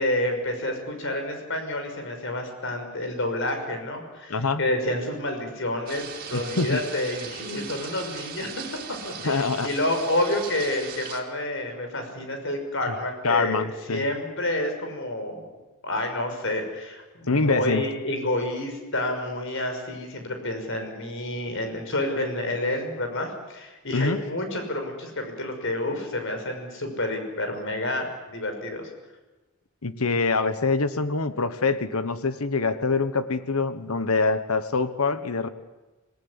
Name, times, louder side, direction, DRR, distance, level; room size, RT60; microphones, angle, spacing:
voice 1, 0.0-8.6 9.0-15.5 15.8-28.9, left 1 dB, 60° left, 5 dB, 6.0 m, -29 dB
voice 2, 4.3-4.6 6.3-6.8 9.2-9.7 13.2-14.0 17.3-17.9 23.9-24.2 29.8-35.5, left 3 dB, 80° left, 11 dB, 1.3 m, -24 dB
sound 1, 5.9-11.2, right 6 dB, 45° right, 3.4 m, -38 dB
26.5 x 18.5 x 9.7 m, 1.1 s
head